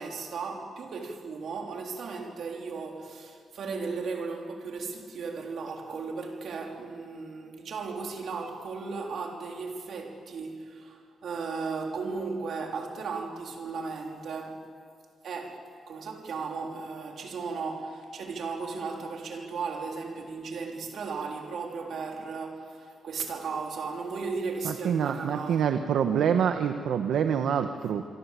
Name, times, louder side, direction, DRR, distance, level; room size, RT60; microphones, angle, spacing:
voice 1, 0.0-14.6 15.2-15.6 15.9-25.8 26.0-26.2 27.7-27.8, right 4 dB, 55° right, 3.6 m, -36 dB
voice 2, 24.6-28.1, right 8 dB, 70° right, 1.1 m, -26 dB
25.0 x 25.0 x 8.3 m
wide cardioid pair, 180°, 0 cm